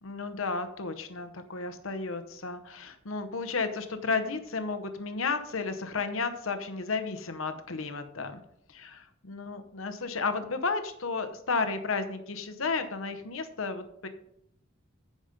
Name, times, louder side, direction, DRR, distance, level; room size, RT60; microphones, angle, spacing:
voice 1, 0.0-8.4 8.7-14.1, left 4 dB, 70° left, 9 dB, 1.0 m, -33 dB
14.5 x 5.1 x 5.3 m, 0.76 s
head